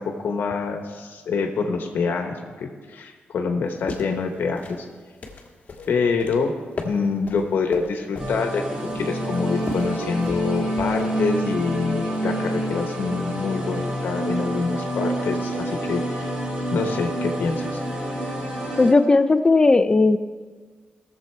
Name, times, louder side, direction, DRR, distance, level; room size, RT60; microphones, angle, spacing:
voice 1, 0.0-4.8 5.8-6.5 6.8-8.6 8.9-16.3 16.7-17.8, left 4 dB, 75° left, 4 dB, 1.1 m, -26 dB
sound 1, 3.6-11.1, left 3 dB, 45° left, 1.6 m, -39 dB
sound 2, 8.2-18.9, right 1 dB, 20° right, 4.4 m, -27 dB
voice 2, 18.8-20.2, left 3 dB, 25° left, 11 dB, 0.5 m, -16 dB
18.0 x 7.2 x 4.5 m, 1.5 s
wide cardioid pair, 135°, 4 cm